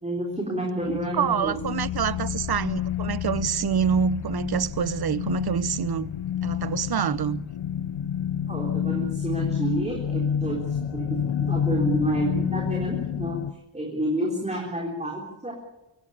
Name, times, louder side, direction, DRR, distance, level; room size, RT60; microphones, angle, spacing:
voice 1, 0.0-1.5 8.5-13.4 13.7-15.5, right 1 dB, 15° right, 3.7 m, -29 dB
sound 1, 0.8-13.5, left 9 dB, 80° left, 0.9 m, -29 dB
voice 2, 1.1-6.1 6.4-7.5, right 7 dB, 55° right, 0.9 m, -26 dB
24.5 x 16.5 x 8.7 m
wide cardioid pair, 125°, 46 cm